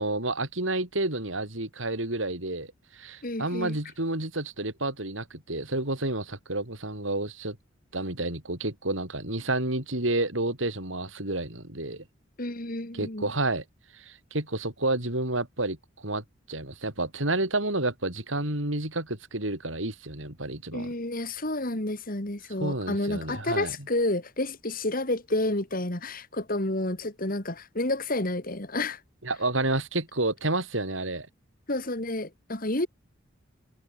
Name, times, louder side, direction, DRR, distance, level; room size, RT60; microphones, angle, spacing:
voice 1, 0.0-2.7 2.9-7.6 7.9-12.0 12.9-13.6 13.9-15.8 16.0-20.9 22.6-23.7 29.2-31.3, right 2 dB, 80° right, 5.9 m, -30 dB
voice 2, 3.2-3.8 12.4-13.3 20.7-29.0 31.7-32.9, left 2 dB, 45° left, 3.0 m, -30 dB
head